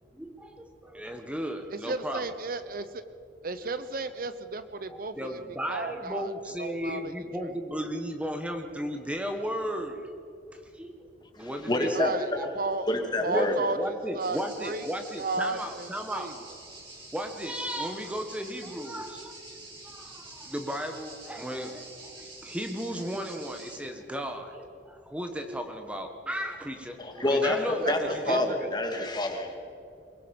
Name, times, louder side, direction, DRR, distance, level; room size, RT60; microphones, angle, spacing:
voice 1, 0.1-2.2 4.9-10.0 10.5-11.1 11.4-12.5 13.3-16.3 17.1-19.3 19.8-28.7, equal, 5° right, 5 dB, 1.3 m, -35 dB
voice 2, 1.7-3.0 3.4-5.4 5.7-7.1 7.4-7.5 11.9-12.9 13.2-14.8 15.2-16.3 27.8-28.0 28.2-28.6, right 3 dB, 55° right, 12 dB, 0.8 m, -33 dB
voice 3, 11.4-12.1 12.9-13.5 27.0-28.0 28.3-29.5, left 2 dB, 25° left, 3 dB, 2.5 m, -27 dB
sound 1, 14.2-23.8, right 2 dB, 30° right, 5.8 m, -47 dB
23.5 x 22.5 x 5.4 m, 2.6 s
head